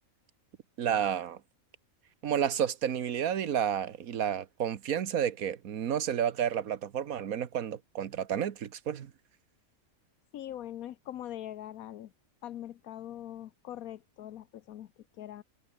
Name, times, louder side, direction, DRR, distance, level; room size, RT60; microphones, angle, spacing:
voice 1, 0.8-1.4 2.2-9.1, right 9 dB, 75° right, 1.5 m, -31 dB
voice 2, 10.3-12.1 12.4-15.4, left 11 dB, 85° left, 1.2 m, -42 dB
omnidirectional pair, 1.5 m